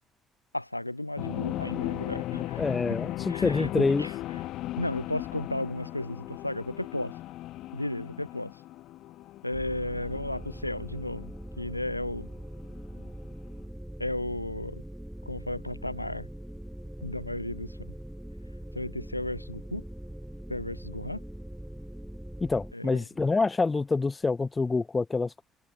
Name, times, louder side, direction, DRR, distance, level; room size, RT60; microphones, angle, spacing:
voice 1, 0.5-2.6 3.3-4.1 4.8-7.2 7.7-8.5 9.4-11.3 11.6-12.3 14.0-14.8 15.3-16.3 17.0-17.9 18.7-19.8 20.5-21.2 22.7-23.0, left 1 dB, 90° left, 2.1 m, -34 dB
sound 1, 1.2-13.1, left 15 dB, 55° left, 1.1 m, -37 dB
voice 2, 2.6-4.1 22.4-25.4, left 3 dB, 25° left, 0.3 m, -26 dB
sound 2, 9.5-22.7, right 1 dB, 5° right, 4.3 m, -42 dB
figure-of-eight pair, 50°, 0 cm